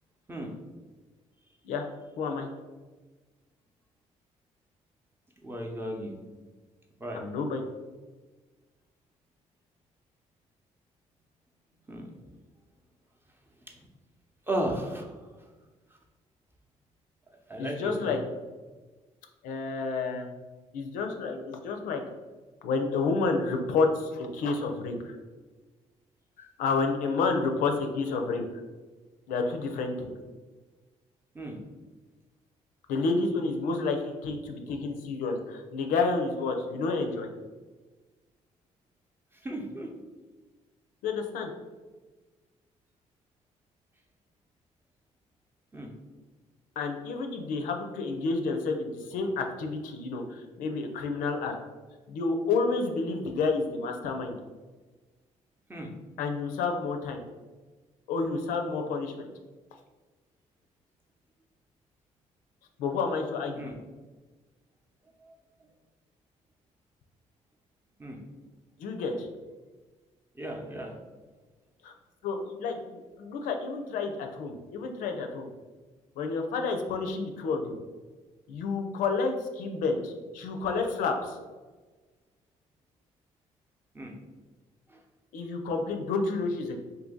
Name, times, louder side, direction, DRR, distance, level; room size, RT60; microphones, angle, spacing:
voice 1, 2.2-2.5 7.1-7.6 17.6-18.2 19.4-20.3 20.7-22.0 22.6-25.2 26.4-28.6 29.3-30.1 32.9-37.3 41.0-41.5 46.8-51.5 52.1-54.4 56.2-57.2 58.1-59.3 62.8-63.7 68.8-69.3 71.8-71.9 72.2-75.5 76.2-77.8 78.5-81.4 85.3-86.8, left 4 dB, 80° left, 4 dB, 0.4 m, -30 dB
voice 2, 5.4-6.1 7.0-7.2 11.9-12.1 13.7-13.8 14.5-15.1 17.5-18.2 31.3-31.6 39.4-39.9 45.7-45.9 55.7-55.9 63.6-63.7 65.2-65.3 68.0-68.2 70.4-70.9 83.9-84.1 84.9-85.0, right 1 dB, 15° right, 1 dB, 0.7 m, -35 dB
2.7 x 2.6 x 3.7 m, 1.3 s
supercardioid pair, 70°, 14 cm